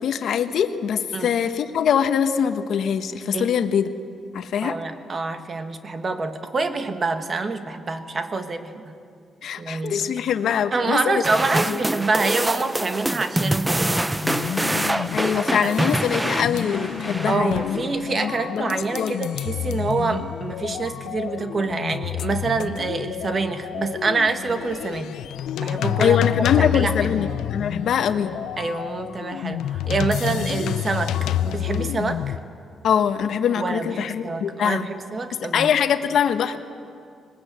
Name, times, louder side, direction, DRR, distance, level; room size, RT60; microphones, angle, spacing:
voice 1, 0.0-3.9 4.3-4.8 9.4-11.2 11.7-11.8 15.1-17.8 18.2-19.1 26.0-28.3 32.8-34.9 35.3-36.6, left 8 dB, 70° left, 9 dB, 1.0 m, -23 dB
voice 2, 4.6-8.9 9.6-10.1 10.7-14.2 15.6-15.8 17.3-25.2 25.6-26.2 26.6-27.1 28.6-31.1 31.5-32.4 33.6-35.7, right 3 dB, 35° right, 8 dB, 1.4 m, -26 dB
sound 1, 11.2-17.8, right 1 dB, 10° right, 0.5 m, -25 dB
sound 2, 14.2-32.4, left 10 dB, 90° left, 0.6 m, -29 dB
20.5 x 20.0 x 8.1 m, 2.4 s
cardioid pair, 115°, 0 cm